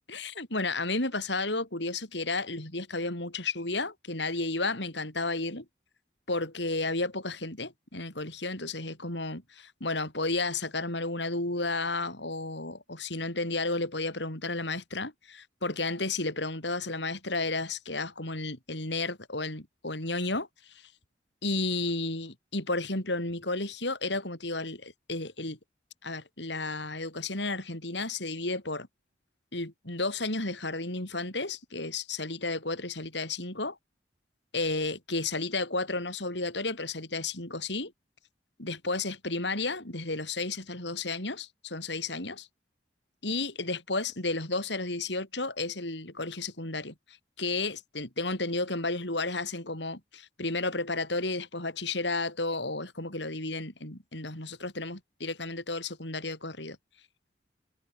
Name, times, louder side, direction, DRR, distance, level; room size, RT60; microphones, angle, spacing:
voice 1, 0.1-5.6 6.3-20.9 21.4-25.6 26.0-28.9 29.5-33.8 34.5-37.9 38.6-42.5 43.2-56.8, left 3 dB, 75° left, 6.8 m, -32 dB
head